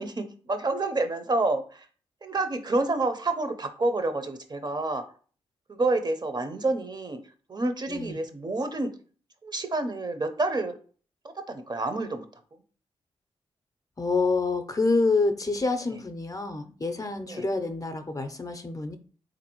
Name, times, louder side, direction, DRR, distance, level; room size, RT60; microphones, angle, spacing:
voice 1, 0.0-1.9 2.2-5.0 5.7-7.2 7.5-8.9 9.4-10.8 11.5-12.2 17.3-17.4, right 2 dB, 40° right, 7 dB, 0.6 m, -28 dB
voice 2, 14.0-19.0, left 3 dB, 30° left, 8 dB, 0.5 m, -27 dB
3.7 x 2.6 x 3.0 m, 0.41 s
cardioid pair, 50°, 11 cm